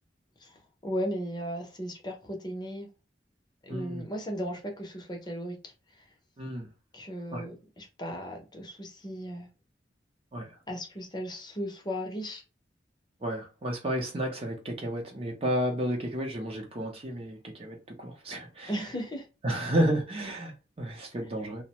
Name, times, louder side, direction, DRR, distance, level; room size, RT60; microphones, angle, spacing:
voice 1, 0.8-2.9 3.6-5.6 6.9-9.5 10.7-12.4 18.7-19.3, equal, 25° left, 0.6 m, -36 dB
voice 2, 3.7-4.0 6.4-6.7 7.3-7.5 10.3-10.5 13.2-18.9 19.4-21.6, right 1 dB, 30° right, 0.6 m, -32 dB
2.4 x 2.0 x 2.9 m
head